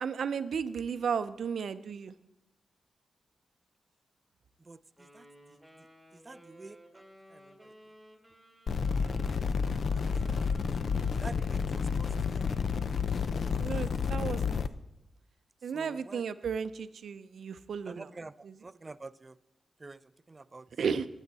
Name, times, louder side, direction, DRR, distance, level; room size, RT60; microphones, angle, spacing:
voice 1, 0.0-2.1 13.6-14.6 15.6-18.1 18.4-18.6 20.8-21.1, right 6 dB, 70° right, 12 dB, 0.6 m, -34 dB
voice 2, 4.7-5.2 6.1-6.8 7.3-7.7 9.7-10.4 10.7-10.8 11.1-12.5 15.7-16.2 17.9-19.4 19.8-20.0 20.3-20.7, right 3 dB, 25° right, 16 dB, 0.3 m, -48 dB
Wind instrument woodwind instrument, 5.0-14.6, equal, ahead, 2.0 m, -56 dB
sound 1, 8.7-14.7, left 6 dB, 55° left, 0.5 m, -30 dB
18.5 x 7.2 x 4.1 m, 0.94 s
wide cardioid pair, 115°, 0 cm